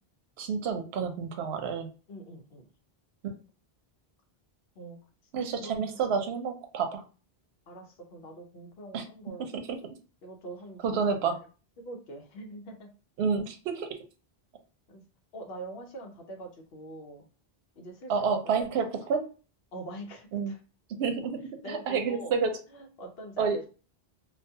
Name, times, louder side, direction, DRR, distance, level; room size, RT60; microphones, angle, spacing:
voice 1, 0.4-1.9 5.3-7.0 8.9-9.0 9.5-9.8 10.8-11.4 13.2-13.9 18.1-19.3 20.3-20.5 20.9-21.4 21.7-22.6 23.4-23.7, right 5 dB, 85° right, 6 dB, 0.8 m, -29 dB
voice 2, 2.1-2.7 4.8-5.0 5.6-6.0 7.7-9.5 10.2-11.4 11.8-12.9 14.9-15.0 15.3-17.3 17.8-18.5 19.7-20.6 21.6-22.4 22.7-23.7, right 1 dB, 80° left, 3 dB, 0.9 m, -44 dB
2.4 x 2.2 x 2.6 m, 0.36 s
omnidirectional pair, 1.0 m